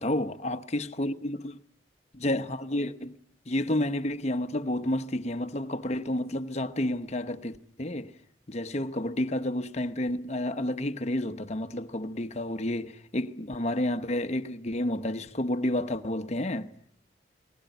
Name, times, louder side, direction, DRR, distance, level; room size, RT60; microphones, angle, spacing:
voice 1, 0.0-1.6 2.1-3.1 3.5-8.1 8.5-16.7, left 1 dB, 35° left, 0.9 m, -30 dB
20.5 x 19.0 x 9.2 m
head